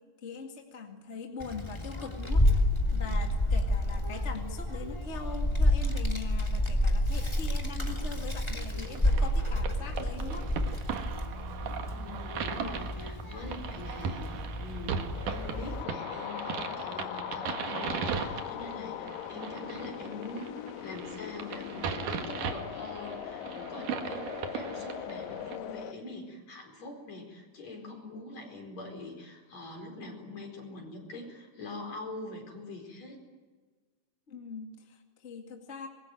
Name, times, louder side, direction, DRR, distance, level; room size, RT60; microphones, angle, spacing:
voice 1, 0.2-2.5 2.9-10.5 34.3-35.9, left 4 dB, 25° left, 3 dB, 1.9 m, -42 dB
Child speech kid speaking, 1.4-15.8, left 1 dB, 10° left, 2.3 m, -30 dB
sound 1, 8.8-25.6, right 6 dB, 70° right, 3.2 m, -38 dB
voice 2, 11.8-33.2, left 2 dB, 50° left, 4 dB, 5.7 m, -44 dB
sound 2, 15.1-25.9, left 10 dB, 85° left, 2.7 m, -40 dB
25.5 x 21.5 x 9.3 m, 1.4 s
omnidirectional pair, 3.9 m